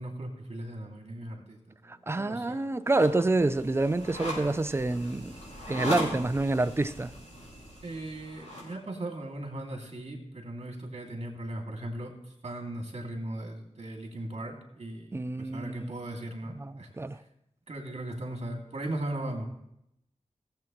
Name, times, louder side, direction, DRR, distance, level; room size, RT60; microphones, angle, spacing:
voice 1, 0.0-2.6 7.8-12.1 12.4-17.2 17.7-19.5, right 1 dB, 60° right, 2.3 m, -38 dB
voice 2, 1.9-5.3 5.7-7.1 15.1-15.9 16.6-17.2, right 2 dB, 20° right, 0.4 m, -28 dB
sound 1, 2.9-8.7, left 1 dB, 70° left, 4.8 m, -39 dB
17.5 x 7.7 x 3.0 m
wide cardioid pair, 95°, 12 cm